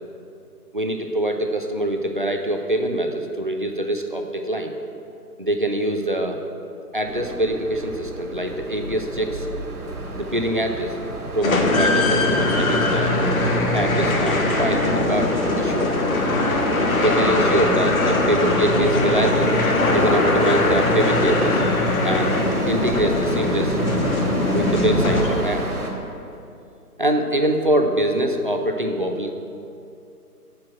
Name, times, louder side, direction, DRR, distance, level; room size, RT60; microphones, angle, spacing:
voice 1, 0.7-4.7 5.4-6.4 6.9-9.5 10.2-11.0 11.3-13.2 13.7-16.0 16.9-19.5 19.9-21.6 22.0-22.4 22.7-23.8 24.4-25.7 27.0-29.4, right 1 dB, 35° right, 4 dB, 0.4 m, -24 dB
sound 1, 7.1-25.9, right 2 dB, 70° right, 2.1 m, -30 dB
sound 2, 11.4-25.7, left 2 dB, 60° left, 1.4 m, -21 dB
7.6 x 5.9 x 7.7 m, 2.6 s
hypercardioid pair, 165°, 46 cm